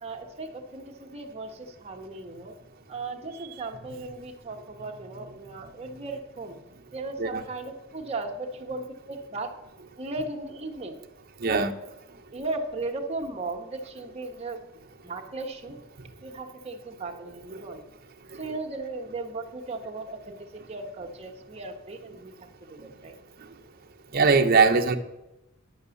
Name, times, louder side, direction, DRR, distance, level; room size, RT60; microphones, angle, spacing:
voice 1, 0.0-2.5 2.9-6.5 6.9-9.5 10.0-11.0 11.4-11.7 12.3-14.6 15.0-15.8 16.2-17.8 18.4-23.1, right 2 dB, 30° right, 1.2 m, -36 dB
voice 2, 11.4-11.7 17.5-17.6 24.1-25.0, right 4 dB, 45° right, 0.8 m, -21 dB
10.0 x 6.2 x 7.0 m
head